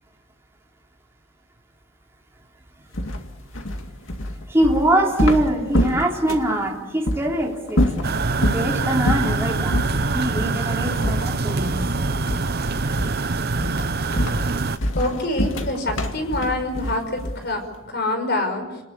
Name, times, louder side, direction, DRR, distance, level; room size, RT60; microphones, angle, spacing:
sound 1, 2.9-6.6 7.1-7.2 7.7-8.7 9.1-9.4 9.7-10.0 10.4-10.6 11.0-12.0 12.3-12.6 13.0-13.3 13.6-17.6, left 1 dB, 75° left, 2.3 m, -25 dB
voice 1, 4.5-7.9 8.4-11.8, right 1 dB, 15° right, -1 dB, 3.1 m, -23 dB
sound 2, 8.0-14.8, right 3 dB, 50° right, 0.8 m, -24 dB
sound 3, 11.1-12.9, equal, 25° left, 5.7 m, -35 dB
voice 2, 14.9-18.8, left 2 dB, 55° left, 6 dB, 5.6 m, -26 dB
29.5 x 20.0 x 8.5 m, 1.1 s
head